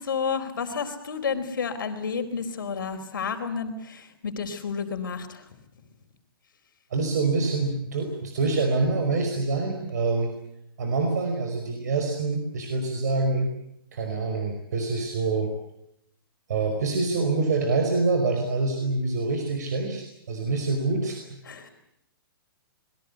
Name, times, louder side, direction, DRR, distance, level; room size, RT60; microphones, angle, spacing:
voice 1, 0.0-5.4 21.5-21.7, left 6 dB, 60° left, 7 dB, 4.4 m, -31 dB
voice 2, 6.9-10.3 10.8-13.5 13.9-15.5 16.5-21.7, right 3 dB, 45° right, 4 dB, 5.1 m, -26 dB
27.5 x 22.0 x 8.3 m, 0.79 s
hypercardioid pair, 180°, 12 cm